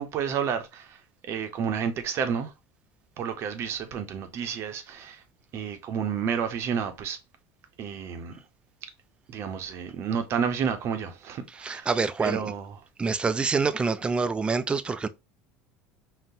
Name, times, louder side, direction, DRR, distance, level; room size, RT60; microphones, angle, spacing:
voice 1, 0.0-2.5 3.2-5.2 5.5-7.2 7.8-8.4 8.8-8.9 9.3-11.9 12.2-12.8, right 7 dB, 50° right, 0.7 m, -31 dB
voice 2, 11.6-12.4 13.0-15.1, right 4 dB, 15° right, 0.3 m, -26 dB
3.8 x 2.1 x 2.6 m
supercardioid pair, 110°, 6 cm